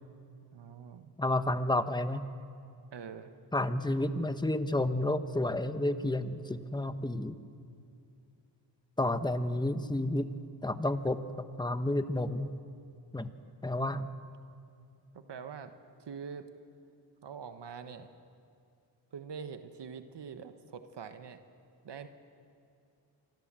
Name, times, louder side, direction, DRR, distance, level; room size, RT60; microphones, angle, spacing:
voice 1, 0.5-1.1 2.9-3.3 15.1-15.7 16.0-16.5 17.2-18.1 19.1-21.4 21.8-22.1, right 6 dB, 65° right, 8 dB, 1.3 m, -44 dB
voice 2, 1.2-2.3 3.5-7.4 9.0-10.3 10.6-12.5 13.1-13.3 13.6-14.1, left 1 dB, 10° left, 10 dB, 1.1 m, -31 dB
26.0 x 24.0 x 7.6 m, 2.4 s
wide cardioid pair, 100°, 45 cm